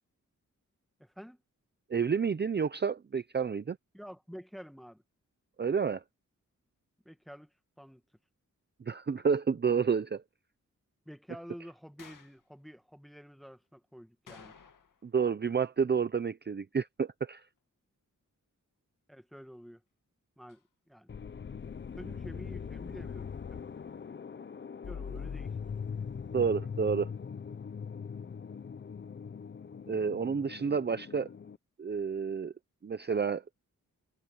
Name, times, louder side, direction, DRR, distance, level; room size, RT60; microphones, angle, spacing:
voice 1, 1.0-1.4 3.9-5.0 7.0-8.0 11.0-14.6 19.1-19.8 20.4-21.1 21.9-23.6 24.8-25.6, equal, ahead, 1.4 m, -49 dB
voice 2, 1.9-3.8 5.6-6.0 8.9-10.2 15.0-17.4 26.3-27.1 29.9-31.3 31.8-32.5 32.8-33.4, right 6 dB, 35° right, 0.6 m, -30 dB
sound 1, 12.0-12.4 14.3-15.1 15.4-15.5 20.5-20.6, left 6 dB, 85° left, 2.2 m, -54 dB
sound 2, 21.1-31.6, left 6 dB, 40° left, 0.6 m, -41 dB
wide cardioid pair, 135°, 31 cm